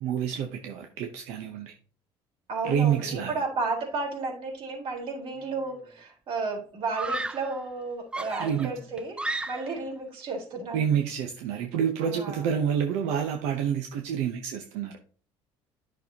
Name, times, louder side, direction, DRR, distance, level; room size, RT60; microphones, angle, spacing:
voice 1, 0.0-1.7 2.6-3.4 8.4-8.7 10.7-15.0, right 8 dB, 85° right, 4 dB, 0.9 m, -28 dB
voice 2, 2.5-9.2 9.5-10.8 12.0-12.4, right 3 dB, 55° right, 0 dB, 4.1 m, -33 dB
Screaming, 5.4-5.9 6.9-7.6 8.1-9.9, right 2 dB, 10° right, 0.4 m, -34 dB
10.5 x 6.3 x 2.9 m, 0.42 s
cardioid pair, 110°, 11 cm